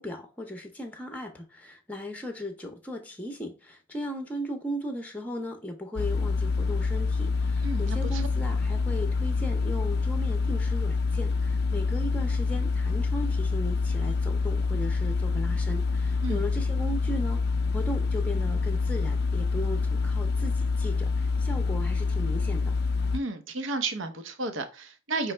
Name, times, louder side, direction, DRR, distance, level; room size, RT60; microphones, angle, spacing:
voice 1, 0.0-17.4 17.7-22.7, equal, 5° left, 0.7 m, -37 dB
sound 1, 6.0-23.2, left 4 dB, 50° left, 0.3 m, -26 dB
voice 2, 7.6-8.2 16.2-16.4 23.1-25.3, right 3 dB, 65° right, 0.8 m, -32 dB
5.4 x 3.0 x 3.2 m
head